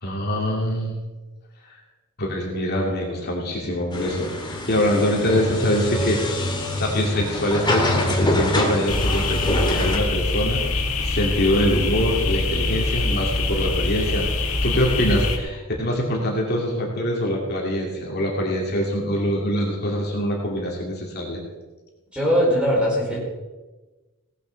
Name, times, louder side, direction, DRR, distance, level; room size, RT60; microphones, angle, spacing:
voice 1, 0.0-1.0 1.7-1.8 2.2-10.6 11.0-14.3 14.6-21.4, equal, 50° left, -1 dB, 2.6 m, -24 dB
sound 1, 3.9-10.0, left 1 dB, 20° left, 2.1 m, -24 dB
sound 2, 8.9-15.4, left 2 dB, 85° left, 1.8 m, -24 dB
voice 2, 22.1-23.2, equal, 5° right, -4 dB, 4.8 m, -20 dB
17.0 x 8.3 x 6.6 m, 1.2 s
head